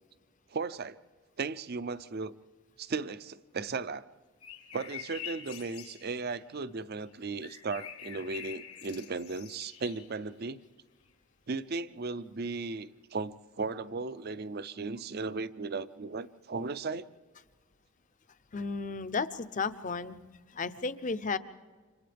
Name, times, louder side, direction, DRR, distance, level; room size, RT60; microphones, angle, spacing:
voice 1, 0.5-1.0 1.4-2.3 2.8-4.1 4.7-10.6 11.5-17.1, right 4 dB, 45° right, 0.5 m, -36 dB
sound 1, 4.4-6.3 7.4-10.3 11.1-11.2, left 9 dB, 80° left, 1.5 m, -46 dB
voice 2, 18.5-20.2 20.5-21.4, left 4 dB, 35° left, 0.6 m, -33 dB
30.0 x 26.0 x 3.4 m
head